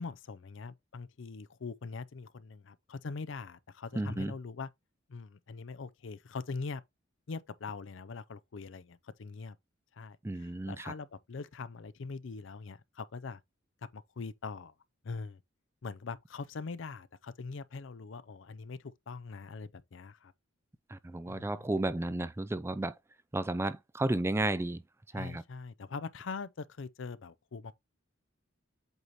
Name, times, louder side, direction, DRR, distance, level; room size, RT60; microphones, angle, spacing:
voice 1, 0.0-4.7 5.1-6.8 7.3-9.6 10.0-13.4 13.9-14.7 15.0-15.4 15.8-20.3 21.3-21.7 25.1-27.7, left 4 dB, 70° left, 0.5 m, -42 dB
voice 2, 4.0-4.3 10.2-10.9 20.9-22.9 23.3-24.8 25.1-25.4, right 2 dB, 15° right, 0.3 m, -33 dB
8.0 x 3.0 x 4.1 m
head